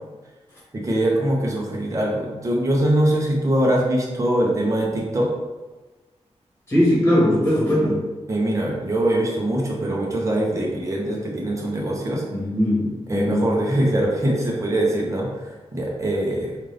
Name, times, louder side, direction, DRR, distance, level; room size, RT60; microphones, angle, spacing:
voice 1, 0.7-5.3 8.3-12.2 13.1-16.6, right 1 dB, 25° right, -2 dB, 0.8 m, -22 dB
voice 2, 6.7-8.0 12.3-13.5, left 1 dB, 20° left, -6 dB, 1.4 m, -20 dB
5.4 x 2.5 x 3.3 m, 1.2 s
wide cardioid pair, 180°, 12 cm